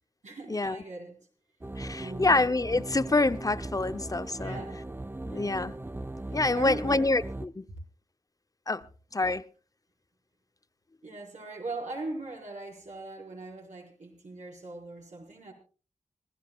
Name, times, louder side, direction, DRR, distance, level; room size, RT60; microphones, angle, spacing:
voice 1, 0.2-1.2 1.9-2.3 4.4-4.8 5.3-5.8 6.5-7.1 11.0-15.5, right 2 dB, 75° right, 4.8 m, -40 dB
sound 1, 1.6-7.5, right 2 dB, 15° right, 0.6 m, -38 dB
voice 2, 1.8-4.6 5.2-5.8 6.3-7.7 8.7-8.9 9.1-9.4, left 2 dB, 30° left, 0.6 m, -27 dB
26.0 x 15.0 x 2.3 m
cardioid pair, 55°, 12 cm